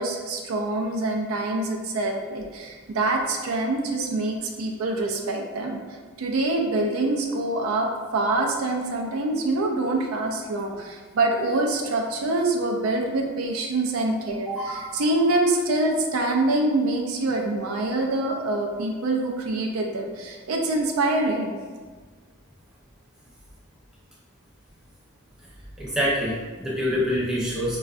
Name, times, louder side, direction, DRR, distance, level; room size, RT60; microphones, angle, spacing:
voice 1, 0.0-5.8 6.2-21.5, right 2 dB, 75° right, 1 dB, 0.4 m, -25 dB
voice 2, 14.5-15.0 25.8-27.8, equal, 5° right, -8 dB, 0.7 m, -26 dB
4.0 x 2.3 x 2.4 m, 1.4 s
head